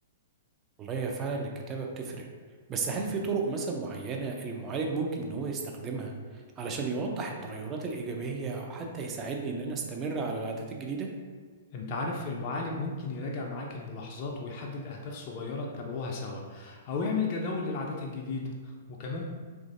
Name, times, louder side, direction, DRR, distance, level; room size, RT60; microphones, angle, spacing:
voice 1, 0.8-2.2 2.7-11.1, right 4 dB, 25° right, 1 dB, 0.4 m, -33 dB
voice 2, 11.7-19.2, left 3 dB, 40° left, -1 dB, 0.4 m, -34 dB
3.1 x 2.5 x 2.5 m, 1.5 s
figure-of-eight pair, 110°, 0 cm